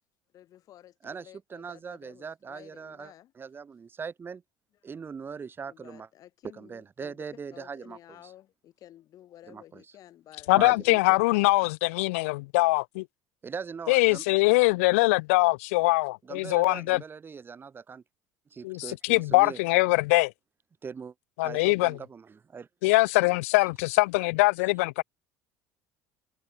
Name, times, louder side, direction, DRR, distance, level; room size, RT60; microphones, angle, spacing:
voice 1, 0.3-3.3 5.7-10.9, left 12 dB, 55° left, 7.4 m, -52 dB
voice 2, 1.0-4.4 4.8-6.1 6.5-8.0 9.5-9.8 10.5-11.2 13.4-14.2 16.2-18.0 18.5-19.6 20.8-21.1 21.4-22.7, right 6 dB, 30° right, 1.4 m, -40 dB
voice 3, 10.5-13.0 13.9-17.0 18.6-20.3 21.4-22.0 22.8-25.0, left 24 dB, 75° left, 0.4 m, -23 dB
hypercardioid pair, 70°, 7 cm